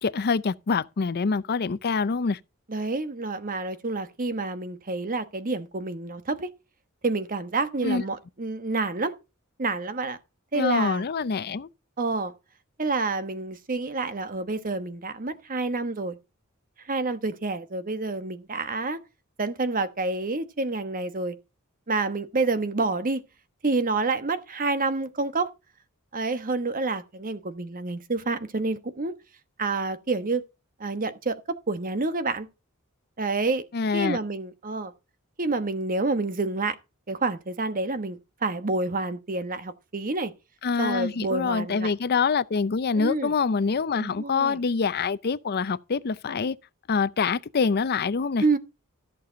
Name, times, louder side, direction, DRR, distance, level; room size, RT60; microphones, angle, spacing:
voice 1, 0.0-2.4 7.8-8.0 10.5-11.7 33.7-34.2 40.6-46.6 46.9-48.4, left 5 dB, 45° left, 0.5 m, -25 dB
voice 2, 2.7-6.5 7.0-9.1 9.6-10.2 10.5-11.0 12.0-12.3 12.8-16.2 16.9-19.0 19.4-21.4 21.9-23.2 23.6-25.5 26.1-29.1 29.6-30.4 30.8-31.4 31.7-32.5 33.2-33.6 33.9-34.9 35.4-36.8 37.1-40.3 40.8-41.9 43.0-43.3 43.9-44.6 48.4-48.6, right 3 dB, 40° right, 1.1 m, -28 dB
14.0 x 6.8 x 3.8 m
head